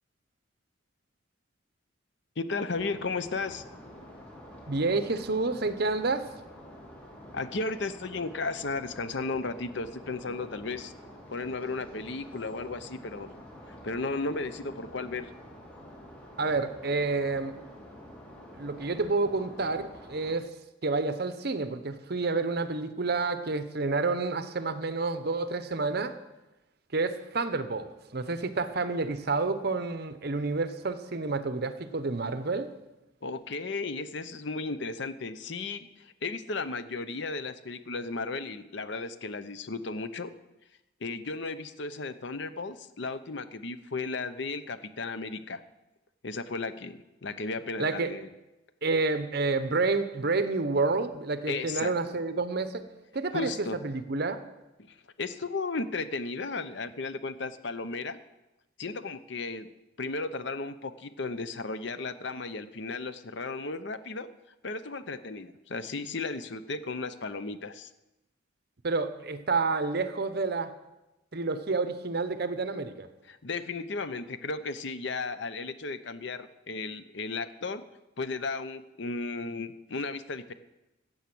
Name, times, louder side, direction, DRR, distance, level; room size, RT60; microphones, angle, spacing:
voice 1, 2.4-3.6 7.3-10.9 11.3-13.3 13.8-15.3 33.2-40.3 41.0-45.6 46.2-48.3 51.5-51.9 53.3-53.8 54.9-58.2 58.8-59.7 60.0-64.3 64.6-67.9 73.3-77.8 78.2-80.5, left 3 dB, 60° left, 13 dB, 0.7 m, -35 dB
sound 1, 2.7-20.4, left 1 dB, 5° left, 2.5 m, -48 dB
voice 2, 4.7-6.3 16.4-17.6 18.5-20.5 20.8-26.2 26.9-32.7 47.8-48.1 48.8-52.8 53.1-54.4 68.8-70.7 71.3-73.1, right 3 dB, 50° right, 11 dB, 0.8 m, -29 dB
15.0 x 8.0 x 6.1 m, 1.0 s
head